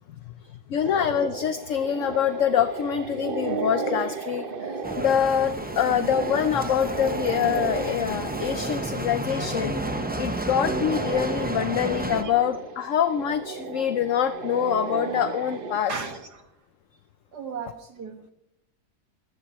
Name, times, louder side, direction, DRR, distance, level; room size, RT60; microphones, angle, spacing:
voice 1, 0.7-15.9, left 9 dB, 60° left, 10 dB, 0.9 m, -25 dB
sound 1, 0.8-15.8, right 4 dB, 40° right, 0.9 m, -34 dB
Bicycle, 4.8-12.2, right 1 dB, 10° right, 0.5 m, -32 dB
voice 2, 15.9-16.4 17.3-18.3, right 5 dB, 80° right, 4 dB, 2.4 m, -35 dB
22.0 x 17.0 x 3.1 m, 0.84 s
omnidirectional pair, 1.7 m